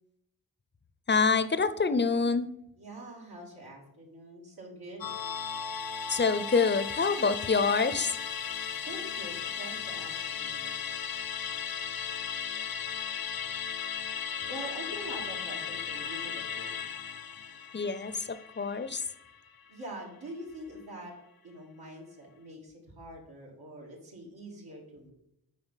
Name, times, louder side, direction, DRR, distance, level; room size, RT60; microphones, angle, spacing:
voice 1, 1.1-2.5 6.1-8.1 17.7-19.0, left 4 dB, 30° left, 13 dB, 0.6 m, -26 dB
voice 2, 2.8-5.0 8.8-10.8 14.5-16.9 19.7-21.1 21.4-25.1, right 1 dB, 75° right, -2 dB, 2.5 m, -44 dB
Musical instrument, 5.0-19.7 20.0-20.1, left 7 dB, 70° left, 0.6 m, -36 dB
8.1 x 4.8 x 5.7 m, 0.80 s
wide cardioid pair, 65°, 37 cm